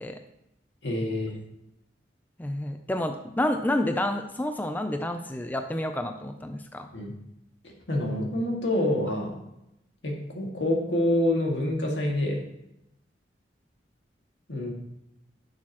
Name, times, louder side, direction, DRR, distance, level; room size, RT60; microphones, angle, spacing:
voice 1, 0.8-1.4 6.9-7.1 7.6-9.4 10.0-12.4 14.5-14.7, left 1 dB, 75° left, 0 dB, 2.0 m, -27 dB
voice 2, 2.4-6.9, left 1 dB, 10° left, 6 dB, 0.4 m, -29 dB
11.5 x 6.3 x 3.0 m, 0.85 s
head